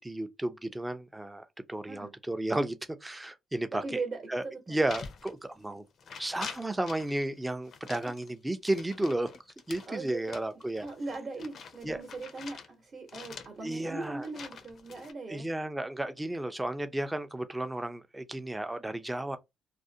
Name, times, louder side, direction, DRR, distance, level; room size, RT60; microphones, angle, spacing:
voice 1, 0.0-4.0 4.3-5.8 6.2-9.3 9.7-10.9 11.8-12.0 13.6-14.3 15.3-19.4, right 1 dB, 10° right, 0.4 m, -33 dB
voice 2, 3.7-4.8 9.9-10.4 10.8-15.5, right 3 dB, 45° right, 0.9 m, -39 dB
sound 1, 4.9-5.7 6.0-7.3 7.7-12.7 13.1-15.1, left 6 dB, 60° left, 0.5 m, -46 dB
2.4 x 2.0 x 2.6 m
cardioid pair, 90°, 0 cm